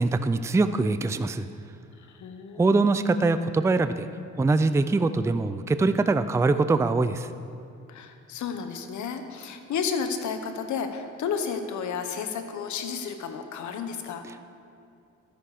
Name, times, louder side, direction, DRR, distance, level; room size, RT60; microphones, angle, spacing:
voice 1, 0.0-1.5 2.6-4.1 4.4-7.3, right 3 dB, 10° right, 11 dB, 0.4 m, -23 dB
voice 2, 2.2-2.6 7.9-14.2, left 6 dB, 75° left, 7 dB, 1.1 m, -32 dB
12.5 x 10.0 x 5.0 m, 2.5 s
cardioid pair, 90°, 30 cm